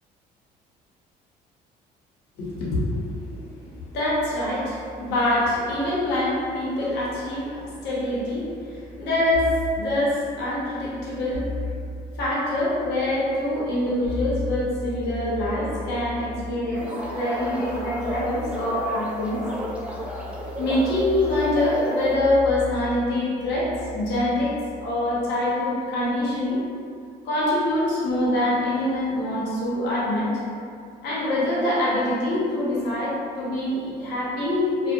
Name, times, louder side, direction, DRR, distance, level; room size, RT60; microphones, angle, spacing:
voice 1, 2.4-11.5 12.1-19.5 20.6-24.5 24.8-26.6 27.2-30.3 31.0-34.9, left 1 dB, 80° left, -7 dB, 0.8 m, -25 dB
sound 1, 9.3-9.8 11.3-12.3 14.0-25.4, left 2 dB, 45° right, 0.7 m, -36 dB
sound 2, 16.7-22.2, right 1 dB, 5° right, 0.3 m, -33 dB
2.6 x 2.1 x 2.2 m, 2.4 s
cardioid pair, 110°, 17 cm